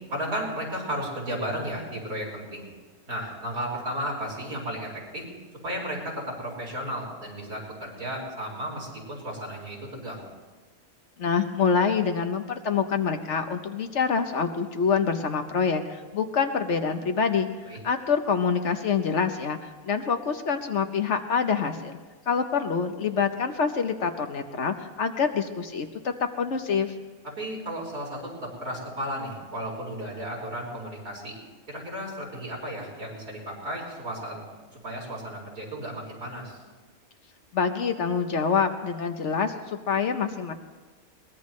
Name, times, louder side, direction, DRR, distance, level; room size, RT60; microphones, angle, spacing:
voice 1, 0.1-2.6 3.1-5.2 5.6-10.2 17.7-17.8 27.4-31.4 31.7-34.4 34.7-36.6, equal, 85° right, -3 dB, 4.8 m, -34 dB
voice 2, 11.2-17.5 17.8-22.0 22.3-26.9 37.5-40.5, left 6 dB, 55° left, 7 dB, 1.1 m, -26 dB
22.0 x 19.5 x 3.2 m, 1.3 s
omnidirectional pair, 1.5 m